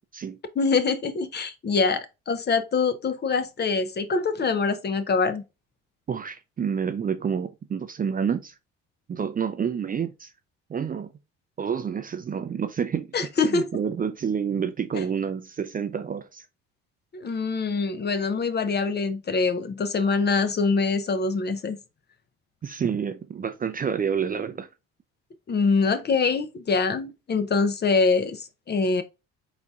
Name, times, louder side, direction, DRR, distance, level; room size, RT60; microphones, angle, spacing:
voice 1, 0.6-5.4 13.1-13.7 14.9-15.0 17.1-21.8 25.5-29.0, left 4 dB, 35° left, 0.7 m, -24 dB
voice 2, 6.1-8.5 9.1-10.3 10.7-11.1 11.6-13.1 13.4-16.5 22.6-24.7, right 7 dB, 30° right, 0.4 m, -28 dB
4.0 x 4.0 x 2.4 m
supercardioid pair, 70°, 31 cm